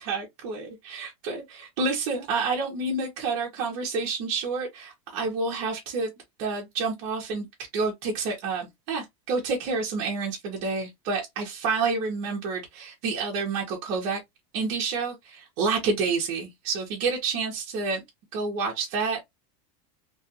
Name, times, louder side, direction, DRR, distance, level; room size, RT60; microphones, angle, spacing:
voice 1, 0.0-6.1 6.4-7.5 7.7-14.2 14.5-18.0 18.3-19.2, right 4 dB, 40° right, 1.1 m, -29 dB
3.1 x 2.5 x 2.8 m
supercardioid pair, 175°, 18 cm